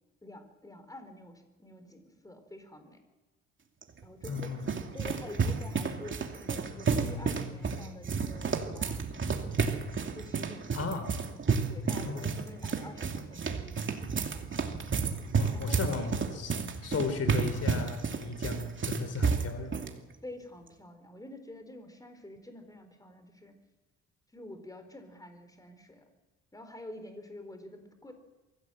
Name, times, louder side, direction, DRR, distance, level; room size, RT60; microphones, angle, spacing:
voice 1, 0.2-3.0 4.0-9.6 10.1-11.0 11.7-14.4 15.5-15.8 20.2-23.5 24.3-26.1 26.5-28.1, left 1 dB, 10° left, 7 dB, 4.1 m, -48 dB
sound 1, 3.8-19.9, right 5 dB, 40° right, 2.6 m, -31 dB
voice 2, 4.3-4.7 10.7-11.2 12.0-12.3 15.4-19.8, left 4 dB, 50° left, 9 dB, 3.2 m, -35 dB
23.5 x 16.5 x 7.7 m, 1.2 s
cardioid pair, 90°, 30 cm